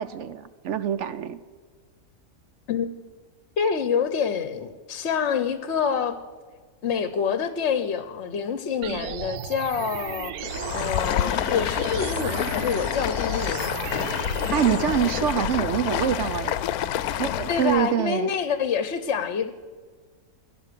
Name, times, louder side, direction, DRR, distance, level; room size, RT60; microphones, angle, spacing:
voice 1, 0.0-1.4 14.5-16.6 17.2-18.3, right 9 dB, 60° right, 14 dB, 0.9 m, -25 dB
voice 2, 3.6-6.2 6.8-10.3 10.7-13.7 17.5-19.5, left 6 dB, 55° left, 11 dB, 1.0 m, -26 dB
sound 1, 8.8-14.8, right 11 dB, 85° right, 1.1 m, -35 dB
Stream, 10.4-17.9, left 11 dB, 85° left, 1.1 m, -28 dB
17.0 x 10.5 x 6.7 m, 1.5 s
omnidirectional pair, 1.5 m